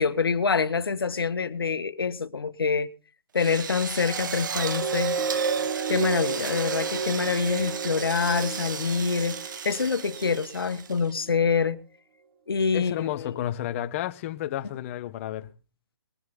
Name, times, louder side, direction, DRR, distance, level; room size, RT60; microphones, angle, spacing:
voice 1, 0.0-2.9 3.3-5.2 5.9-11.8 12.5-13.4, left 5 dB, 80° left, 1.6 m, -26 dB
Drill, 3.4-11.2, right 7 dB, 55° right, 1.4 m, -35 dB
sound 1, 3.9-10.6 11.2-11.3, right 5 dB, 40° right, 1.6 m, -32 dB
voice 2, 12.7-15.5, left 12 dB, 35° left, 1.2 m, -31 dB
22.0 x 7.8 x 3.8 m
hypercardioid pair, 145°, 12 cm